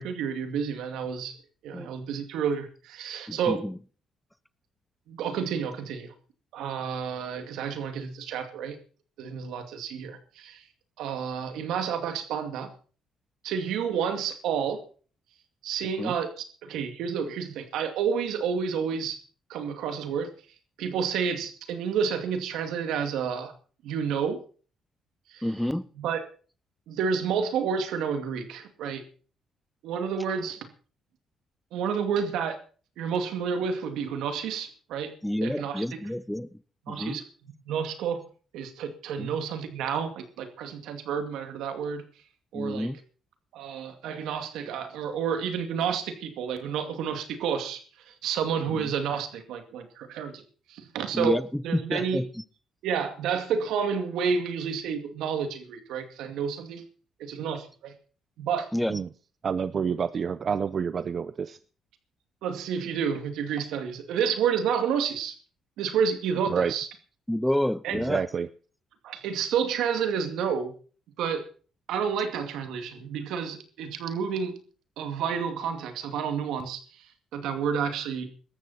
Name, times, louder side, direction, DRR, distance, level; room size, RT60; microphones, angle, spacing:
voice 1, 0.0-1.4 1.6-3.6 5.1-6.1 6.5-8.8 9.2-10.6 11.0-12.7 13.4-14.8 15.6-16.3 16.6-19.2 19.5-20.3 20.8-23.5 23.8-24.4 25.3-25.4 26.0-26.2 26.9-29.0 29.8-30.6 31.7-32.6 33.0-35.1 35.4-36.0 36.9-37.2 37.7-38.2 38.5-42.0 42.5-42.9 43.5-47.8 48.2-50.4 50.7-51.4 51.6-52.2 52.8-56.8 57.2-57.9 58.4-58.7 62.4-65.3 65.8-66.9 67.8-68.0 69.0-70.7 71.2-71.4 71.9-74.6 75.0-76.8 77.3-78.3, right 7 dB, 85° right, 7 dB, 2.4 m, -30 dB
voice 2, 3.3-3.8 16.0-16.1 25.4-25.8 35.2-36.5 36.9-37.2 39.2-39.3 42.5-43.0 48.8-48.9 51.1-52.3 58.7-58.9 67.3-68.2, left 1 dB, 5° left, 16 dB, 0.7 m, -29 dB
voice 3, 59.4-61.6 66.5-66.7 67.9-68.5, right 6 dB, 50° right, 13 dB, 0.6 m, -28 dB
18.5 x 13.5 x 4.3 m, 0.41 s
cardioid pair, 90°, 0 cm